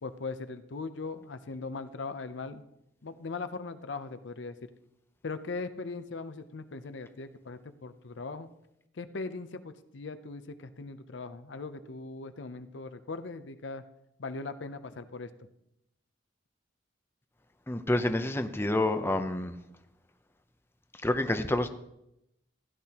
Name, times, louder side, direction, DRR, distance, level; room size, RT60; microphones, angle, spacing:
voice 1, 0.0-2.6 3.0-4.6 5.2-8.5 8.9-13.8 14.2-15.3, left 3 dB, 70° left, 10 dB, 0.6 m, -39 dB
voice 2, 17.7-19.6 21.0-21.7, left 1 dB, 15° left, 8 dB, 0.6 m, -28 dB
15.5 x 10.5 x 2.9 m, 0.83 s
head